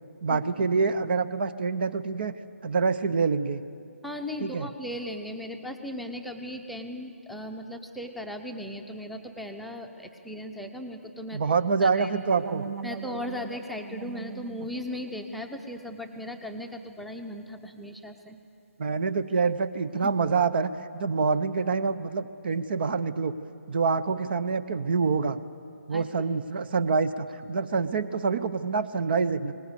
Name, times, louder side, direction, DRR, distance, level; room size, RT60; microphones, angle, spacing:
voice 1, 0.2-2.3 2.6-3.6 4.4-4.7 11.3-12.6 18.8-23.3 23.7-25.4 25.9-29.5, right 5 dB, 45° right, 13 dB, 0.8 m, -26 dB
voice 2, 4.0-11.4 11.8-12.1 12.8-18.4 25.9-26.0, left 1 dB, ahead, 2 dB, 0.8 m, -37 dB
sound 1, 12.2-17.2, right 5 dB, 75° right, 1.4 m, -41 dB
20.5 x 19.0 x 8.1 m, 2.5 s
figure-of-eight pair, 145°, 7 cm